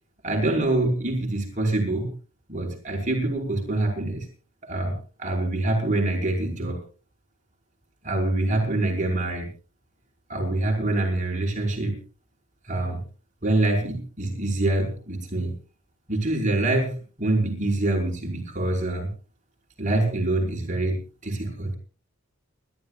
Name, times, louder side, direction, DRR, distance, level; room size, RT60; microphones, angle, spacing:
voice 1, 0.2-2.1 2.5-4.3 4.6-4.9 5.2-6.8 8.0-9.5 10.3-12.0 12.7-13.0 13.4-15.5 16.1-16.9 17.2-19.1 19.8-21.8, right 2 dB, 35° right, 0 dB, 5.3 m, -25 dB
29.5 x 13.5 x 2.5 m, 0.37 s
head